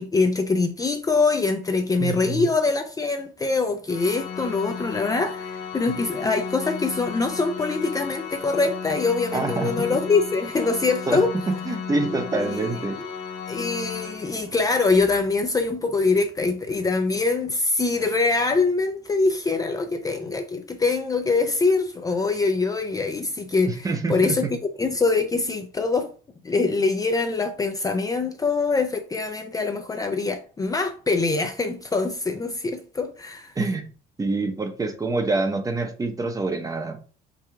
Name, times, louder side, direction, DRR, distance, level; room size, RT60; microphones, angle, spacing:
voice 1, 0.0-11.3 12.4-13.0 13.5-26.1 26.4-33.5, left 3 dB, 20° left, 0.5 m, -24 dB
voice 2, 2.0-2.5 9.3-9.7 11.1-13.0 23.7-24.5 33.6-33.8 34.2-37.0, right 3 dB, 20° right, 0.8 m, -26 dB
Organ, 3.9-14.7, left 6 dB, 70° left, 1.0 m, -34 dB
4.6 x 2.3 x 4.8 m
cardioid pair, 110°, 17 cm